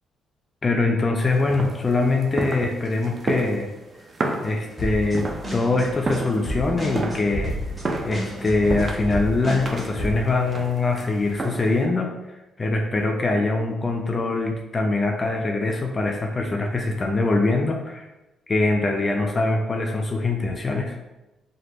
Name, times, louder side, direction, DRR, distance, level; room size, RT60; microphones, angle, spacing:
voice 1, 0.6-3.7 4.4-7.6 8.0-18.1 18.5-21.0, left 3 dB, 30° left, 2 dB, 0.3 m, -23 dB
sound 1, 1.2-11.9, right 2 dB, 35° right, 0.4 m, -32 dB
sound 2, 4.8-10.1, equal, 15° right, 1.0 m, -31 dB
3.1 x 2.2 x 3.0 m, 1.0 s
cardioid pair, 90°, 0 cm